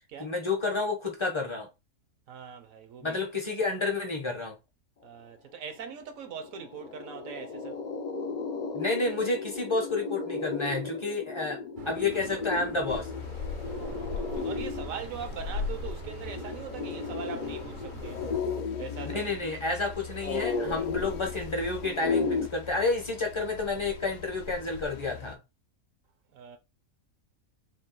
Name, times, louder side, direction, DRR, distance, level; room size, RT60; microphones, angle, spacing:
voice 1, 0.2-1.7 3.0-4.6 8.7-11.6 11.9-13.1 19.0-25.4, left 3 dB, 30° left, 0.6 m, -30 dB
voice 2, 2.3-3.2 5.0-7.8 13.6-18.2 18.8-19.3 26.3-26.6, right 7 dB, 70° right, 1.1 m, -41 dB
sound 1, 5.9-6.0 6.3-22.5, left 4 dB, 85° left, 0.3 m, -35 dB
sound 2, 11.8-18.4, right 6 dB, 55° right, 0.6 m, -45 dB
sound 3, 12.9-25.4, left 6 dB, 65° left, 0.8 m, -40 dB
3.7 x 2.3 x 3.8 m
omnidirectional pair, 1.5 m